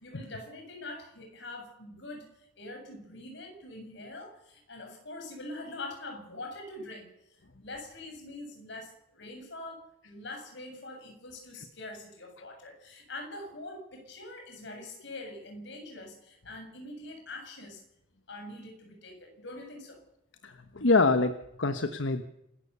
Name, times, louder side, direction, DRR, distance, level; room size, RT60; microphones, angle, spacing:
voice 1, 0.0-17.8 18.3-20.0, left 2 dB, 65° left, 3 dB, 7.4 m, -44 dB
voice 2, 20.4-22.2, left 3 dB, 90° left, 9 dB, 1.2 m, -25 dB
27.5 x 13.5 x 7.0 m, 0.83 s
head